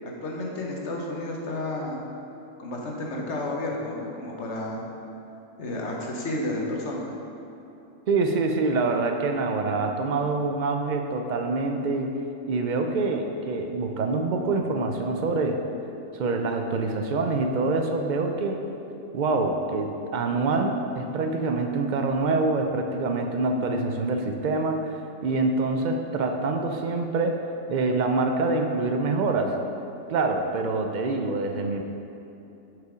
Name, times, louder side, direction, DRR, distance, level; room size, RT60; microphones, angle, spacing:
voice 1, 0.0-2.0 2.6-4.9 5.6-7.1, left 1 dB, 60° left, -1 dB, 1.2 m, -31 dB
voice 2, 8.1-12.1 12.5-15.6 16.1-18.6 19.1-27.4 27.7-29.5 30.1-31.9, right 3 dB, 75° right, 4 dB, 0.4 m, -25 dB
6.6 x 5.0 x 4.8 m, 2.9 s
omnidirectional pair, 1.4 m